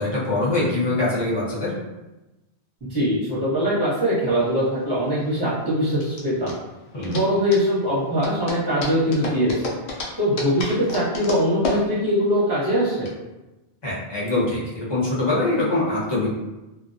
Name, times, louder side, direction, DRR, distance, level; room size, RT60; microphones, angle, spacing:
voice 1, 0.0-1.7 6.9-7.2 13.8-16.3, left 2 dB, 25° left, -7 dB, 0.8 m, -23 dB
voice 2, 2.8-6.5 7.1-9.5 10.2-13.1, equal, 25° right, -9 dB, 0.8 m, -22 dB
sound 1, 4.2-13.1, left 2 dB, 75° left, 0.8 m, -33 dB
2.4 x 2.2 x 2.6 m, 1.0 s
omnidirectional pair, 1.1 m